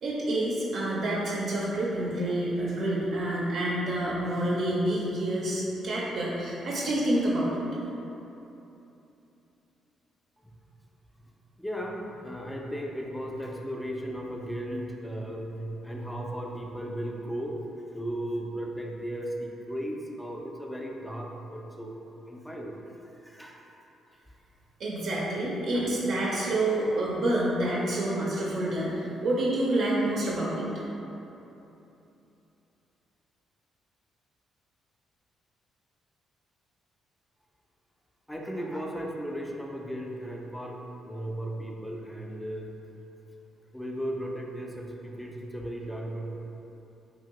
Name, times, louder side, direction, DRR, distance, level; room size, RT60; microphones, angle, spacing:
voice 1, 0.0-7.6 24.8-30.7, right 1 dB, 65° right, -5 dB, 0.5 m, -28 dB
voice 2, 11.6-17.5 17.9-22.0 22.3-22.8 23.2-23.7 38.3-42.8 43.7-46.3, equal, 5° left, 0 dB, 0.4 m, -36 dB
2.8 x 2.7 x 2.9 m, 3.0 s
cardioid pair, 90°, 0 cm